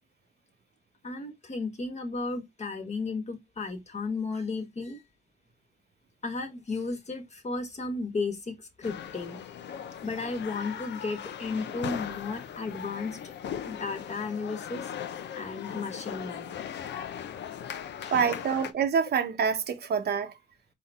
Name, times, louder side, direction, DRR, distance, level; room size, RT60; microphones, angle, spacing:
voice 1, 1.0-5.0 6.2-9.4 10.0-13.3 13.6-14.9 15.3-16.8 17.7-18.4, left 3 dB, 35° left, 1.4 m, -34 dB
sound 1, 8.8-18.7, left 9 dB, 65° left, 0.7 m, -38 dB
voice 2, 18.1-20.3, right 6 dB, 55° right, 0.9 m, -26 dB
4.2 x 3.7 x 3.4 m
cardioid pair, 90°, 20 cm